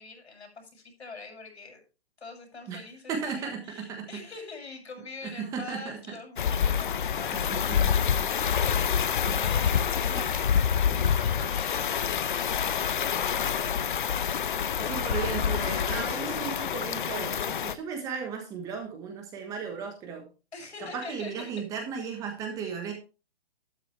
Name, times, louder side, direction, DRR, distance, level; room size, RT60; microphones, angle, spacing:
voice 1, 0.0-1.8 2.2-10.5 11.1-13.7 16.0-16.6 20.5-21.5, left 3 dB, 85° left, 2 dB, 7.1 m, -44 dB
voice 2, 3.1-4.1 5.2-6.0 7.3-7.9 10.1-10.2 10.9-11.2 14.8-20.2 20.8-22.9, right 6 dB, 10° right, 4 dB, 1.3 m, -35 dB
sound 1, 6.4-17.7, left 8 dB, 50° left, 0.8 m, -27 dB
12.0 x 10.0 x 3.3 m, 0.32 s
hypercardioid pair, 165°, 32 cm